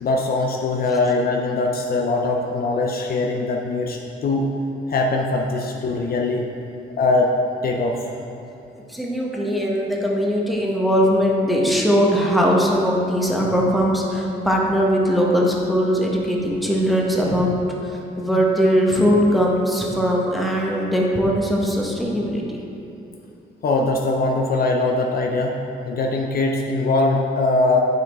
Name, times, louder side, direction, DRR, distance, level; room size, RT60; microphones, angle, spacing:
voice 1, 0.0-4.5 4.9-6.4 7.0-7.3 7.6-8.0 23.6-25.6 25.9-27.8, left 2 dB, 50° left, 0 dB, 0.6 m, -21 dB
voice 2, 8.9-17.5 17.8-22.4, equal, ahead, -3 dB, 1.2 m, -20 dB
9.0 x 4.8 x 3.6 m, 2.8 s
cardioid pair, 90°, 20 cm